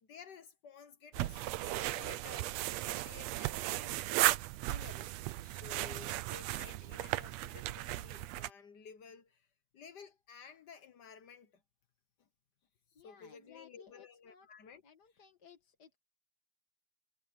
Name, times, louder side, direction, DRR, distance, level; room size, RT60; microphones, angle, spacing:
voice 1, 0.0-4.2 4.7-9.5 9.7-11.6 13.0-14.8 15.1-15.2, left 6 dB, 85° left, 0.9 m, -54 dB
sound 1, 1.1-8.5, right 16 dB, 80° right, 1.5 m, -36 dB
voice 2, 12.9-14.5 14.8-16.0, left 6 dB, 35° left, 1.9 m, -59 dB
omnidirectional pair, 3.8 m